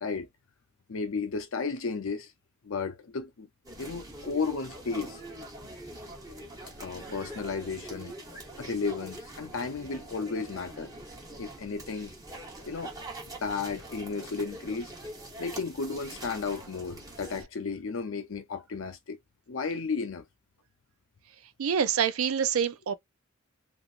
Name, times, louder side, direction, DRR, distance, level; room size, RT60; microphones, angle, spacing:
voice 1, 0.9-2.3 2.6-3.5 3.8-5.2 6.8-8.2 8.6-10.9 11.4-12.1 12.7-12.9 13.4-14.9 15.4-19.2 19.5-20.2, left 4 dB, 70° left, 0.6 m, -33 dB
sound 1, 3.7-17.4, right 1 dB, 20° right, 1.0 m, -44 dB
voice 2, 21.6-22.9, right 7 dB, 85° right, 0.5 m, -26 dB
2.9 x 2.5 x 2.4 m
head